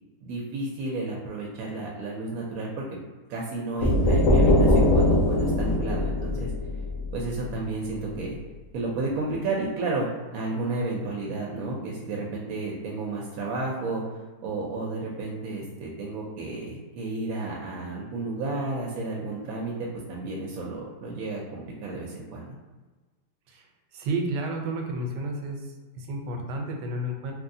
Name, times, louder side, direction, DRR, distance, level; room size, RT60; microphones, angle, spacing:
voice 1, 0.2-2.8 3.3-6.5 7.1-8.4 8.7-14.0 14.4-19.7 20.1-22.5, right 3 dB, 70° right, -3 dB, 0.9 m, -32 dB
sound 1, 3.8-7.5, left 1 dB, 65° left, 0.8 m, -21 dB
voice 2, 23.9-25.6 25.9-27.3, right 2 dB, 85° right, 2 dB, 1.2 m, -31 dB
3.0 x 2.7 x 2.6 m, 1.3 s
omnidirectional pair, 1.8 m